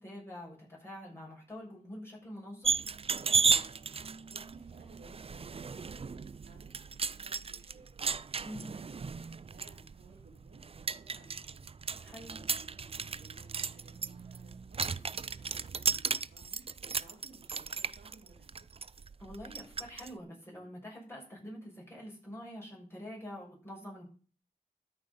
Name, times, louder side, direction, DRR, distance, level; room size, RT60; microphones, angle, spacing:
voice 1, 0.0-2.8 8.4-8.7 12.0-12.4 19.2-24.0, equal, 15° left, -3 dB, 6.5 m, -46 dB
sound 1, 2.6-20.1, right 5 dB, 35° right, 0.4 m, -35 dB
voice 2, 4.3-6.1 6.4-6.7 7.0-7.9 8.4-11.8 12.2-16.6 17.0-18.5, right 3 dB, 90° right, 0 dB, 3.8 m, -59 dB
13.0 x 5.6 x 5.4 m, 0.39 s
cardioid pair, 55°, 16 cm